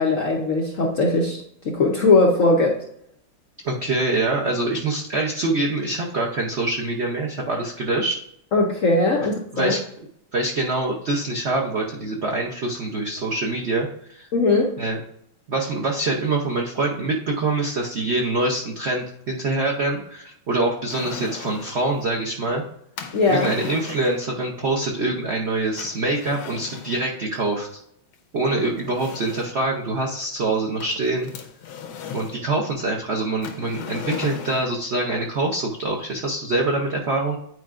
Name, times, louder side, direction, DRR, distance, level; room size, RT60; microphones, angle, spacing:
voice 1, 0.0-2.8 8.5-9.8 14.3-14.7 23.1-23.5, left 3 dB, 60° left, -1 dB, 0.8 m, -19 dB
voice 2, 3.6-8.2 9.5-9.8 10.3-14.3 14.8-15.0 15.5-22.6 23.2-27.7 28.3-31.3 32.1-37.4, right 2 dB, 65° right, 0 dB, 0.6 m, -25 dB
sound 1, 20.9-21.8 23.0-24.3 25.8-27.1 28.1-28.2 28.8-29.7 30.8-32.4 33.4-34.8, left 7 dB, 85° left, 1.6 m, -37 dB
9.4 x 4.6 x 2.5 m, 0.69 s
omnidirectional pair, 2.2 m